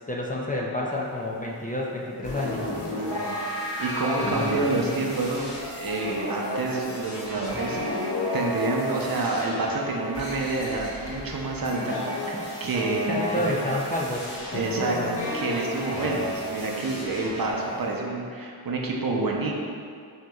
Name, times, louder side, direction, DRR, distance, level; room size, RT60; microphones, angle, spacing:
voice 1, 0.0-2.7 4.2-5.0 13.1-15.1, left 1 dB, 20° left, -3 dB, 0.4 m, -30 dB
sound 1, 2.2-18.0, left 1 dB, 80° left, 1.0 m, -32 dB
voice 2, 2.9-3.4 3.8-5.5 5.7-12.0 12.6-13.5 14.5-19.5, right 3 dB, 55° right, -1 dB, 0.6 m, -28 dB
6.0 x 2.8 x 2.3 m, 2.3 s
wide cardioid pair, 70°, 42 cm